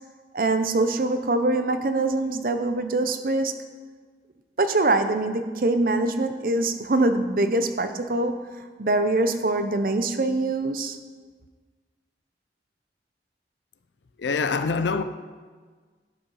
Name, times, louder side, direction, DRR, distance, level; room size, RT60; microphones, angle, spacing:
voice 1, 0.3-3.5 4.6-8.3 8.8-11.0, right 2 dB, 50° right, 0.6 m, -23 dB
voice 2, 14.2-15.0, left 4 dB, 90° left, 0.5 m, -24 dB
11.0 x 5.7 x 5.5 m
head